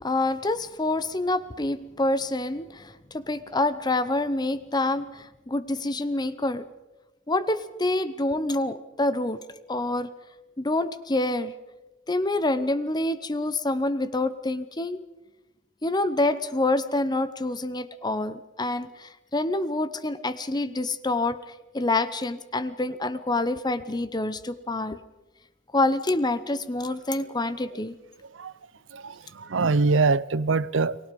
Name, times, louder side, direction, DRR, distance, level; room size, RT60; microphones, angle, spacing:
voice 1, 0.0-6.7 7.3-9.4 9.7-10.1 10.6-11.5 12.1-15.0 15.8-21.4 21.7-25.0 25.7-27.9, left 2 dB, 20° left, 0.8 m, -27 dB
voice 2, 28.2-28.5 28.9-31.0, right 4 dB, 85° right, 0.7 m, -24 dB
30.0 x 20.5 x 5.3 m
head